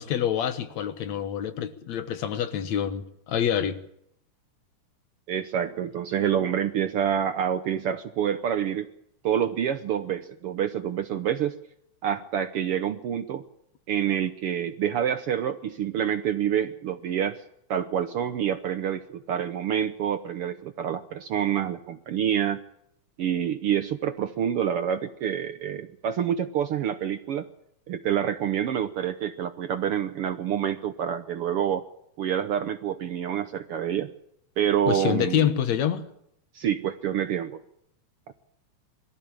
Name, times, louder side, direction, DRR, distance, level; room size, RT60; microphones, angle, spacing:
voice 1, 0.0-3.8 34.9-36.1, left 9 dB, 70° left, 12 dB, 2.5 m, -26 dB
voice 2, 5.3-8.9 9.2-11.6 12.0-13.4 13.9-17.4 17.7-22.6 23.2-27.5 27.9-31.9 32.2-34.1 34.6-35.5 36.5-37.6, right 9 dB, 65° right, 10 dB, 1.5 m, -27 dB
22.5 x 14.5 x 8.8 m, 0.74 s
omnidirectional pair, 3.4 m